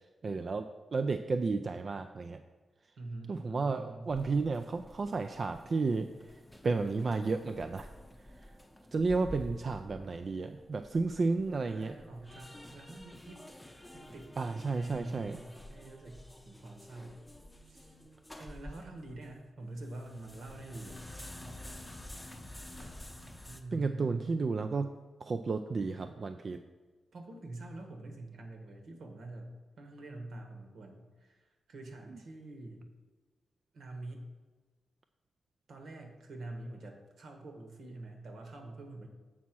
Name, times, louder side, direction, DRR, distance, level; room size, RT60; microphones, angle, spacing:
voice 1, 0.2-2.4 3.3-6.1 6.6-7.9 8.9-11.9 14.4-15.4 23.7-24.9 25.2-26.6, right 4 dB, 50° right, 7 dB, 0.3 m, -32 dB
voice 2, 3.0-4.1 11.7-13.6 13.9-17.2 17.6-18.0 18.4-21.0 23.5-24.6 27.1-32.9 33.7-34.3 35.7-39.1, right 2 dB, 75° right, 3 dB, 1.3 m, -46 dB
sound 1, 4.1-19.4 19.7-23.6, left 1 dB, 10° left, 0.7 m, -50 dB
7.4 x 4.1 x 6.1 m, 1.3 s
cardioid pair, 90°, 0 cm